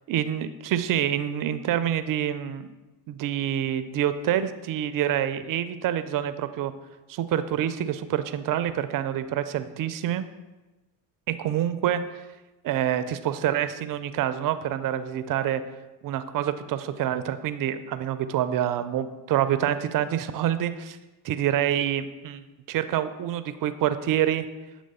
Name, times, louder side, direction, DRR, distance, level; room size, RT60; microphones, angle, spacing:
voice 1, 0.1-2.7 3.1-6.7 7.1-10.2 11.3-12.2 12.6-15.6 16.0-21.0 21.2-24.5, right 11 dB, 45° right, 12 dB, 0.4 m, -27 dB
7.6 x 3.0 x 4.1 m, 1.1 s
hypercardioid pair, 70°, 48 cm